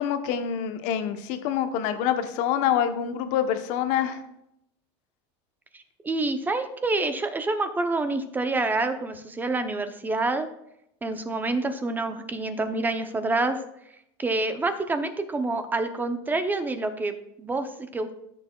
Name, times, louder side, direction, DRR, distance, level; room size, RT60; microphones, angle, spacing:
voice 1, 0.0-4.2, left 9 dB, 55° left, 8 dB, 0.9 m, -26 dB
voice 2, 5.7-10.5 11.0-13.6 14.2-18.1, right 2 dB, 10° right, 9 dB, 0.6 m, -27 dB
14.0 x 6.6 x 2.3 m, 0.79 s
supercardioid pair, 145°, 15 cm